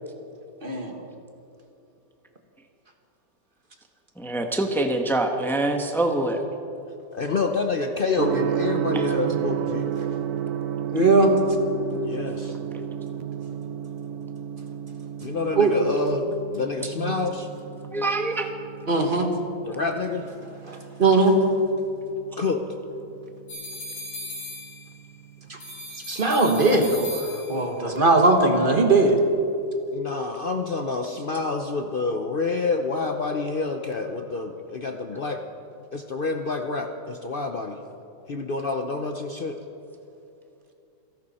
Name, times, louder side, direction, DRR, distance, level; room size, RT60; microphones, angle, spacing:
voice 1, 0.6-1.0 9.3-9.4 10.9-11.3 15.5-15.7 17.0-17.1 18.9-19.3 20.7-21.3 25.5-25.6 26.1-29.2, right 3 dB, 30° right, 3 dB, 1.5 m, -20 dB
voice 2, 4.2-6.4 8.9-9.0 17.9-18.5, right 2 dB, ahead, 4 dB, 0.8 m, -25 dB
voice 3, 7.1-9.9 12.0-12.6 15.2-17.5 19.7-20.2 22.4-22.6 29.9-35.4 35.9-37.8 38.3-39.6, left 4 dB, 90° left, 5 dB, 0.4 m, -28 dB
Gong, 8.2-26.0, right 9 dB, 65° right, 1.1 m, -33 dB
sound 1, 23.5-25.1 25.6-27.8, left 2 dB, 75° left, 4.9 m, -38 dB
28.5 x 11.5 x 4.3 m, 2.8 s
omnidirectional pair, 2.1 m